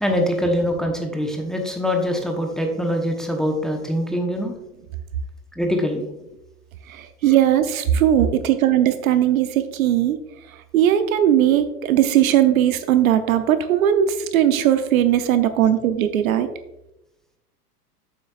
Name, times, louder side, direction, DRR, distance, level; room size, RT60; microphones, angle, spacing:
voice 1, 0.0-4.5 5.6-6.0, equal, ahead, 2 dB, 1.0 m, -23 dB
voice 2, 6.9-10.2 10.7-16.5, right 11 dB, 60° right, 10 dB, 0.8 m, -18 dB
8.7 x 7.7 x 2.4 m, 0.92 s
hypercardioid pair, 105°, 47 cm